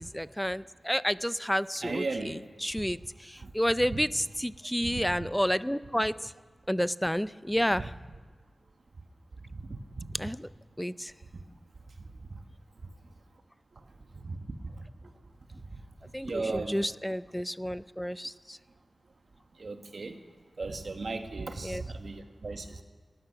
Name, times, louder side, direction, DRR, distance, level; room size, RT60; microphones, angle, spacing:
voice 1, 0.0-6.3 6.7-7.9 10.1-10.5 10.8-11.1 16.1-18.6 21.6-21.8, equal, 5° left, 17 dB, 0.4 m, -30 dB
voice 2, 1.8-2.4 3.4-3.5 4.8-5.0 9.6-10.1 14.2-14.4 16.2-16.8 19.6-20.2 20.6-22.8, right 3 dB, 65° right, 6 dB, 1.3 m, -36 dB
18.5 x 13.0 x 5.8 m, 1.5 s
wide cardioid pair, 65°, 0 cm